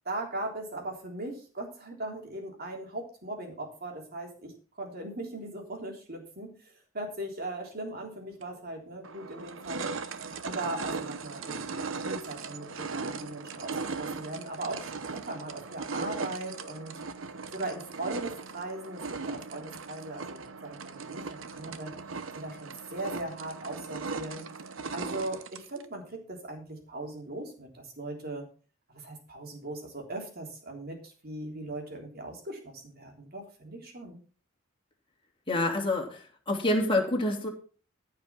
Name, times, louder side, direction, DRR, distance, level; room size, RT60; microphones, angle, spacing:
voice 1, 0.1-6.5 6.9-9.9 10.4-17.0 17.5-21.9 22.3-24.5 24.9-28.5 28.9-34.2, right 2 dB, 50° right, 1 dB, 3.6 m, -39 dB
sound 1, 8.4-8.5 9.0-25.9, right 4 dB, 70° right, 0.9 m, -38 dB
voice 2, 35.5-37.5, left 1 dB, 25° left, 0 dB, 2.9 m, -27 dB
14.5 x 5.9 x 6.0 m, 0.39 s
head